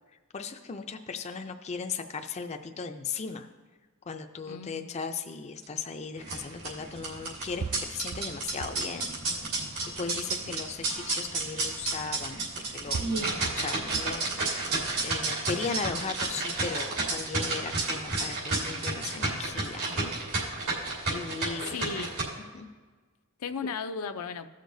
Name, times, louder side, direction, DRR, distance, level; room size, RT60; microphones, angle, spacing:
voice 1, 0.3-3.5 4.1-7.6 7.9-9.1 10.0-13.3 13.6-14.6 15.0-20.1 21.1-21.8 22.5-22.7, left 5 dB, 30° left, 5 dB, 0.4 m, -37 dB
voice 2, 4.5-5.0 10.4-10.6 21.6-22.1 23.4-24.5, left 5 dB, 85° left, 8 dB, 0.5 m, -36 dB
sound 1, 5.6-5.7 6.9-7.0 7.6-8.9 9.4-10.0 11.0-11.1 12.3-12.4 12.9-14.2 14.8-15.3, right 5 dB, 50° right, 0.4 m, -40 dB
sound 2, 6.2-22.2, right 3 dB, 75° right, 2.9 m, -31 dB
16.5 x 6.5 x 2.6 m, 1.4 s
head